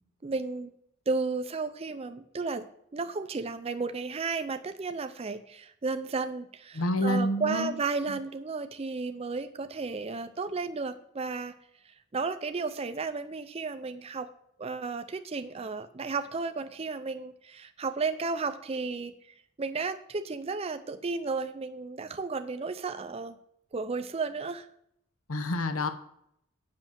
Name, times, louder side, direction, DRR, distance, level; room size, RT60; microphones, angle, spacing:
voice 1, 0.2-0.7 1.1-2.7 2.9-11.5 11.8-14.3 14.6-19.1 19.6-23.4 23.7-24.7, right 4 dB, 30° right, 9 dB, 0.4 m, -33 dB
voice 2, 6.7-7.7 8.1-8.2 25.3-25.9, left 1 dB, 80° left, 9 dB, 0.9 m, -28 dB
7.8 x 6.0 x 7.4 m, 0.72 s
head